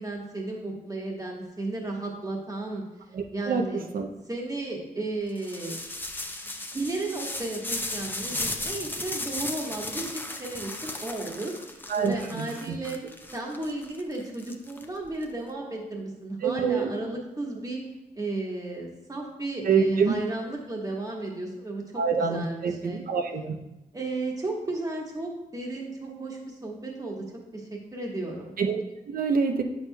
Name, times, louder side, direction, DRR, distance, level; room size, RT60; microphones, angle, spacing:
voice 1, 0.0-2.8 3.3-3.9 4.3-5.8 6.7-13.0 13.3-17.8 18.1-23.0 23.9-27.2 27.5-28.5, right 2 dB, 25° right, -1 dB, 1.3 m, -34 dB
voice 2, 3.1-3.6 3.9-4.1 11.9-12.7 16.4-16.9 19.7-20.1 22.0-23.6 28.6-29.6, right 5 dB, 70° right, 4 dB, 0.6 m, -26 dB
sound 1, 5.4-15.2, left 2 dB, 15° left, 0.5 m, -35 dB
8.2 x 6.4 x 2.2 m, 0.96 s
wide cardioid pair, 105°, 15 cm